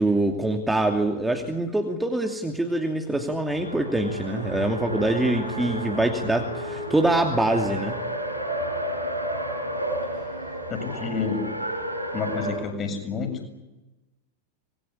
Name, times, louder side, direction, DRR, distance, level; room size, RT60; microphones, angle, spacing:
voice 1, 0.0-8.0, right 1 dB, 5° right, 3 dB, 2.7 m, -24 dB
Race car auto racing, 3.4-12.6, right 1 dB, 85° right, 7.3 m, -31 dB
voice 2, 10.7-11.5 12.1-13.3, left 5 dB, 25° left, 6 dB, 7.6 m, -29 dB
26.0 x 22.5 x 9.9 m, 1.0 s
figure-of-eight pair, 90°, 0 cm